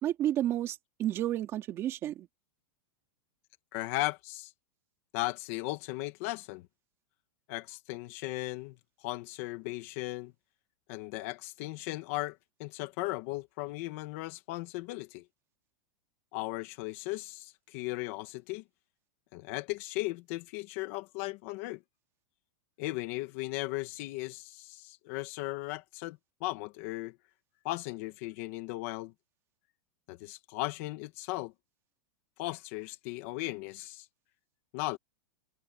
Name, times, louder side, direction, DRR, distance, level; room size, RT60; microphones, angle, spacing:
voice 1, 0.0-2.3, right 12 dB, 20° right, 3.0 m, -31 dB
voice 2, 3.7-4.5 5.1-6.7 7.5-8.7 9.0-10.3 10.9-15.2 16.3-18.6 19.3-21.8 22.8-27.1 27.6-29.1 30.1-31.5 32.4-34.1 34.7-35.0, left 19 dB, 35° left, 1.6 m, -37 dB
supercardioid pair, 175°, 12 cm